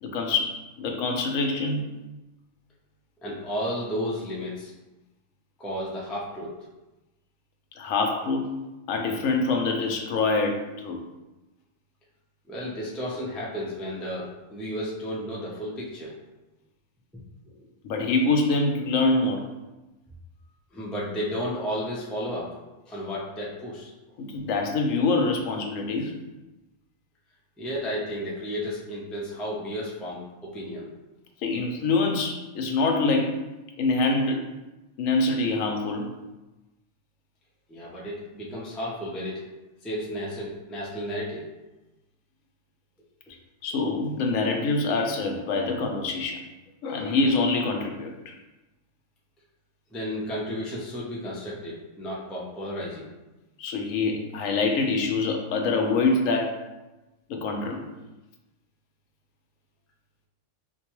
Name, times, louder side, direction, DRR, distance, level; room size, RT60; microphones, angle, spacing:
voice 1, 0.0-1.9 7.8-11.0 17.8-19.4 24.2-26.1 31.4-33.4 33.8-34.4 35.0-36.1 43.6-46.4 46.8-48.3 53.6-56.5 57.3-57.9, left 3 dB, 90° left, 2 dB, 1.0 m, -25 dB
voice 2, 3.2-4.7 5.6-6.6 12.5-16.1 17.4-17.6 20.7-22.6 22.9-23.9 27.6-30.9 37.7-39.4 39.8-41.5 49.9-53.1, equal, ahead, -5 dB, 0.3 m, -33 dB
4.3 x 2.2 x 3.0 m, 1.1 s
omnidirectional pair, 1.3 m